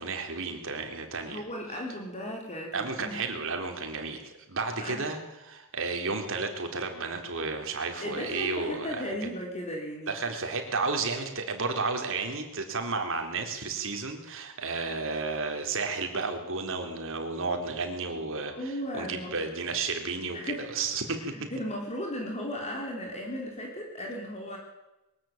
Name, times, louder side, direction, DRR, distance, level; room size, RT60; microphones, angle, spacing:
voice 1, 0.0-1.4 2.7-9.1 10.1-21.2, right 4 dB, 60° right, 4 dB, 3.7 m, -32 dB
voice 2, 1.2-3.2 4.8-5.1 8.0-10.2 18.5-19.4 20.3-20.7 21.3-24.6, equal, 30° left, 0 dB, 4.2 m, -36 dB
22.5 x 13.5 x 9.1 m, 0.96 s
head